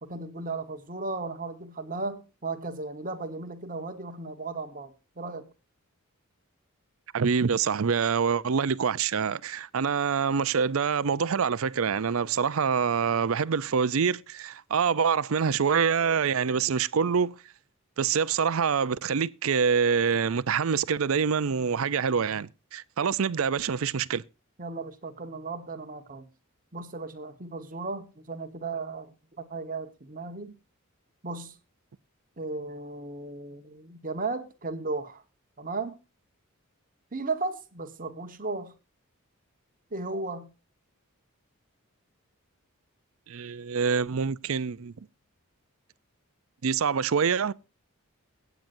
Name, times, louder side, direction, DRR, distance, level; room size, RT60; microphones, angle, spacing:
voice 1, 0.0-5.5 24.6-26.3 26.7-30.5 31.2-31.6 32.4-35.2 35.6-36.0 37.1-38.7 39.9-40.5, right 3 dB, 40° right, 1.3 m, -35 dB
voice 2, 7.1-17.3 18.0-24.2 43.3-44.9 46.6-47.5, right 6 dB, 70° right, 0.5 m, -26 dB
22.5 x 9.1 x 2.6 m
head